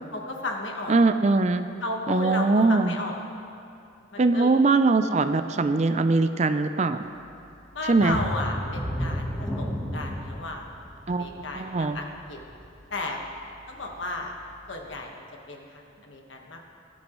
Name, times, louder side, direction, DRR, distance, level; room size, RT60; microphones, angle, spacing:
voice 1, 0.1-1.0 1.8-3.2 4.1-4.5 7.7-10.6 11.1-12.4 12.9-13.3 13.7-14.3 14.7-16.6, left 2 dB, 85° left, 1 dB, 1.5 m, -34 dB
voice 2, 0.9-1.7 2.1-3.0 4.2-7.1 7.9-8.2 11.1-12.0, right 3 dB, 35° right, 10 dB, 0.4 m, -22 dB
sound 1, 8.0-13.4 13.9-14.0 14.5-14.6, equal, 5° left, 1.3 m, -32 dB
18.5 x 11.5 x 3.1 m, 2.6 s
head